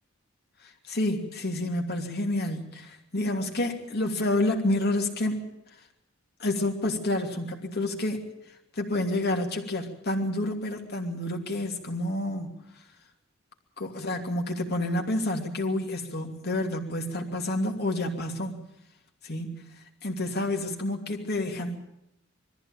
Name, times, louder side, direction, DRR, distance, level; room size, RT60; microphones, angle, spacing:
voice 1, 0.6-5.4 6.4-8.3 8.8-12.5 13.8-18.5 19.2-19.6 20.0-21.8, left 1 dB, 55° left, 2 dB, 2.8 m, -29 dB
22.0 x 14.5 x 9.0 m, 0.85 s
head